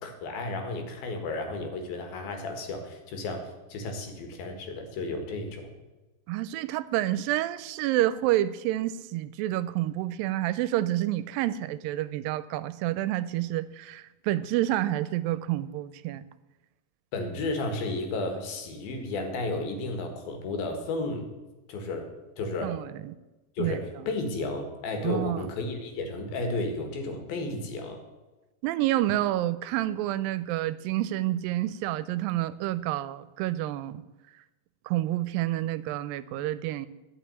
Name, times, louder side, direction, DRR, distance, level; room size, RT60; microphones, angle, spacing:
voice 1, 0.0-5.7 17.1-21.3 21.7-22.1 22.4-22.8 23.6-28.0, left 2 dB, 85° left, 5 dB, 3.5 m, -33 dB
voice 2, 6.3-16.2 22.6-23.2 23.6-24.1 25.0-25.5 28.6-34.0 34.9-36.9, right 14 dB, 85° right, 16 dB, 2.2 m, -29 dB
12.0 x 6.0 x 9.2 m, 1.1 s
omnidirectional pair, 4.1 m